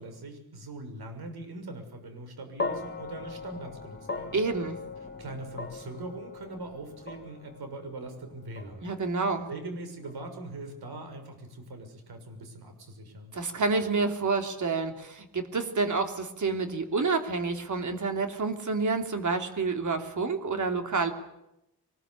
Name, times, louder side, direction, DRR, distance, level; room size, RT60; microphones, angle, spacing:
voice 1, 0.0-4.4 5.2-8.9 9.5-13.3, right 2 dB, 80° right, 6 dB, 6.5 m, -41 dB
sound 1, 2.6-10.9, left 3 dB, 30° left, 1.9 m, -40 dB
voice 2, 4.3-4.8 8.8-9.5 13.3-21.1, right 4 dB, 50° right, 6 dB, 3.1 m, -28 dB
24.0 x 20.5 x 8.6 m, 0.85 s
wide cardioid pair, 165°, 37 cm